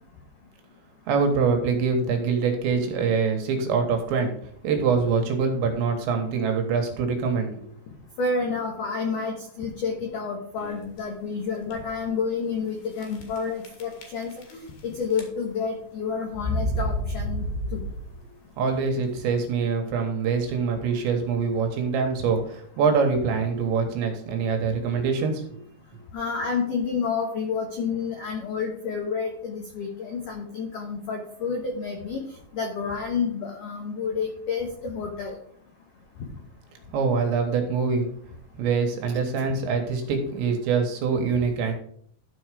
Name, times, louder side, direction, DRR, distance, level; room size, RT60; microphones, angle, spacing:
voice 1, 1.1-4.3 4.6-7.6 18.6-25.6 36.9-38.1 38.6-41.7, right 5 dB, 70° right, 4 dB, 3.4 m, -24 dB
voice 2, 8.2-17.4 17.7-17.8 22.3-22.4 26.1-32.2 32.5-35.4, left 5 dB, 80° left, 2 dB, 1.8 m, -29 dB
sound 1, 10.6-11.0 11.6-11.7 12.0-12.1 13.0-13.4 13.6-14.8 15.1-15.6 16.3-18.3, equal, 60° left, 3.2 m, -30 dB
13.0 x 4.7 x 4.9 m, 0.63 s
omnidirectional pair, 5.5 m